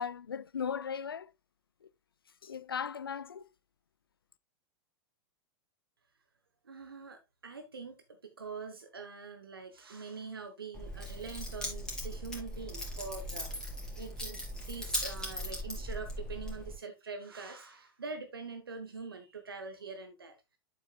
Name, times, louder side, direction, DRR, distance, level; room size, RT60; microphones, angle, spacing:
voice 1, 0.0-1.3 2.4-3.5, left 7 dB, 80° left, 0.4 m, -37 dB
voice 2, 6.6-13.5 14.0-20.4, right 4 dB, 80° right, 1.1 m, -44 dB
Keys jangling, 10.7-16.7, left 1 dB, 5° left, 3.1 m, -39 dB
8.5 x 7.7 x 2.3 m
figure-of-eight pair, 95°, 12 cm